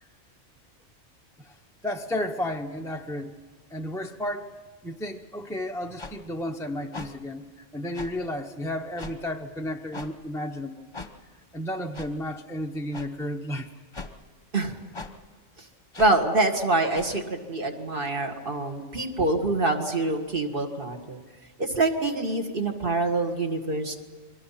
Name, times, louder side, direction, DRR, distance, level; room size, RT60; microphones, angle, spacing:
voice 1, 1.8-3.3 3.7-4.5 4.8-7.5 7.7-10.9 11.5-13.7, left 1 dB, 5° left, 2 dB, 0.6 m, -32 dB
sound 1, 6.0-6.1 6.9-7.1 7.9-8.1 9.0-9.2 9.9-10.1 10.9-11.1 11.9-12.1 12.9-13.1 13.9-14.1 14.9-15.1 15.9-16.1 16.9-17.1, left 3 dB, 20° left, 1.1 m, -38 dB
voice 2, 16.0-21.2 21.6-24.0, right 2 dB, 40° right, 4 dB, 2.1 m, -25 dB
29.5 x 22.5 x 5.8 m, 1.4 s
omnidirectional pair, 1.4 m